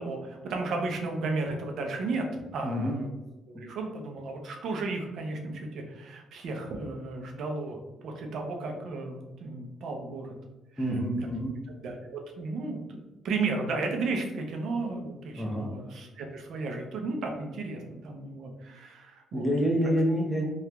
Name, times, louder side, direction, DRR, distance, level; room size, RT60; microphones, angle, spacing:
voice 1, 0.0-2.3 2.5-3.1 3.5-7.8 8.0-10.3 10.7-10.9 11.8-13.0 13.2-19.5, right 3 dB, 70° right, 2 dB, 0.6 m, -34 dB
voice 2, 2.6-3.0 10.8-11.5 15.4-15.7 19.3-20.5, equal, 5° left, -2 dB, 0.7 m, -27 dB
2.9 x 2.4 x 3.3 m, 1.0 s
cardioid pair, 90°, 0 cm